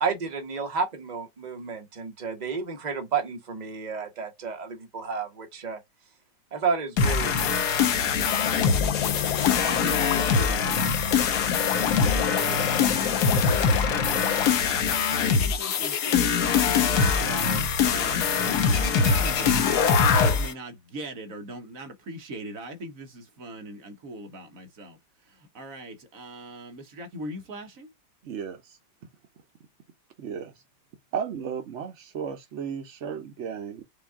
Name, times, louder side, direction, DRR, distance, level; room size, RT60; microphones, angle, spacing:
voice 1, 0.0-5.8 6.5-7.5, right 5 dB, 30° right, 0.9 m, -31 dB
sound 1, 7.0-20.5, left 6 dB, 65° left, 1.2 m, -23 dB
sound 2, 8.3-14.5, left 11 dB, 85° left, 1.4 m, -32 dB
voice 2, 9.6-11.5 12.0-14.6 14.9-27.9, right 1 dB, 50° right, 1.2 m, -40 dB
voice 3, 28.2-28.8 30.2-30.5 31.1-33.8, right 7 dB, 75° right, 0.6 m, -34 dB
5.3 x 2.4 x 3.5 m
omnidirectional pair, 2.0 m